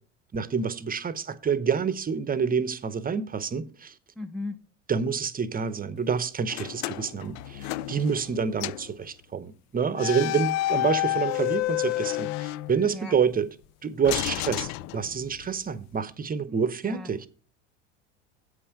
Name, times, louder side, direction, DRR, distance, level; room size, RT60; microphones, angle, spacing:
voice 1, 0.3-3.9 4.9-13.5 13.8-17.3, right 6 dB, 25° right, 0.8 m, -28 dB
voice 2, 4.2-4.6 12.9-13.2 16.5-16.6 16.8-17.1, left 2 dB, ahead, 0.6 m, -36 dB
sound 1, 6.5-8.3 8.6-8.9 9.9-13.2 14.0-15.5, left 17 dB, 55° left, 0.5 m, -30 dB
8.1 x 5.6 x 6.6 m
hypercardioid pair, 75°, 35 cm